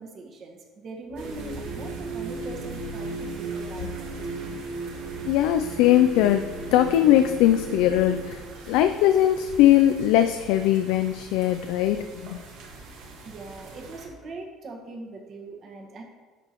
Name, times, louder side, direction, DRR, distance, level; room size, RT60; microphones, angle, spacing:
voice 1, 0.0-4.2 13.2-16.0, right 2 dB, 40° right, 1 dB, 1.5 m, -41 dB
sound 1, 1.1-8.3, right 3 dB, 65° right, 2.1 m, -35 dB
sound 2, 1.2-14.1, right 3 dB, 80° right, 1.7 m, -44 dB
voice 2, 5.2-8.4 8.7-12.4, left 12 dB, 85° left, 8 dB, 0.3 m, -20 dB
11.0 x 6.7 x 3.0 m, 1.4 s
cardioid pair, 130°, 0 cm